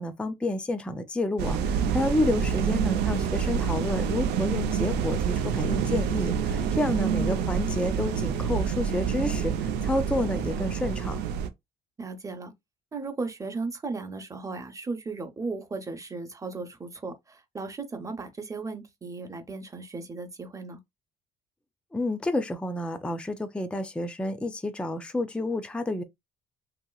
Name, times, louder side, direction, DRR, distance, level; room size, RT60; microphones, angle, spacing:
voice 1, 0.0-11.2 21.9-26.0, left 1 dB, 5° left, 0.4 m, -29 dB
sound 1, 1.4-11.5, right 7 dB, 80° right, 0.6 m, -27 dB
voice 2, 2.4-2.7 7.2-7.3 12.0-12.5 12.9-20.8, right 3 dB, 20° right, 0.8 m, -36 dB
2.9 x 2.8 x 2.3 m
cardioid pair, 110°, 17 cm